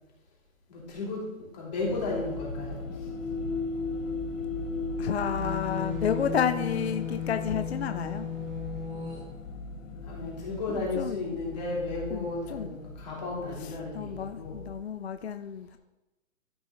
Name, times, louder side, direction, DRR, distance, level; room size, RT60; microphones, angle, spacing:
voice 1, 0.7-3.1 10.0-14.6, left 3 dB, 30° left, -5 dB, 3.1 m, -34 dB
sound 1, 1.8-14.7, left 3 dB, 70° left, 1.8 m, -37 dB
voice 2, 5.0-8.3 10.7-11.2 12.1-12.8 13.6-15.8, left 7 dB, 50° left, 9 dB, 0.5 m, -31 dB
sound 2, 5.3-9.2, left 8 dB, 35° right, 2.7 m, -36 dB
13.5 x 4.7 x 3.8 m, 1.0 s
hypercardioid pair, 170°, 42 cm